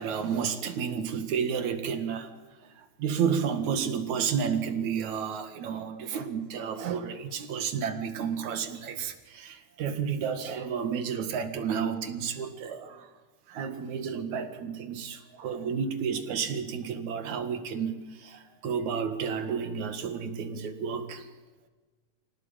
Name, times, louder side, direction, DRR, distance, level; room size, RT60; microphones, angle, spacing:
voice 1, 0.0-2.3 3.0-13.1 13.5-21.3, right 7 dB, 75° right, 3.2 m, -31 dB
25.5 x 17.5 x 9.0 m
omnidirectional pair, 3.4 m